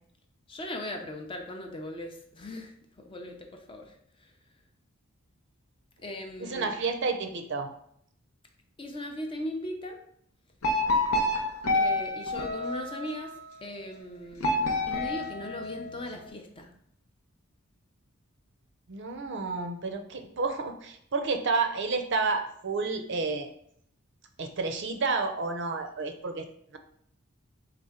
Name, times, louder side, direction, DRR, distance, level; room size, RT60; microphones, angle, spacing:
voice 1, 0.5-3.9 6.0-6.7 8.8-10.0 11.7-13.3 13.6-16.7, left 1 dB, 25° left, 4 dB, 0.5 m, -38 dB
voice 2, 6.4-7.7 18.9-23.5 24.4-26.5, right 4 dB, 55° right, 6 dB, 0.5 m, -30 dB
sound 1, 10.6-13.3 14.4-16.2, left 1 dB, 90° left, 0.8 m, -28 dB
4.2 x 3.4 x 3.6 m, 0.68 s
head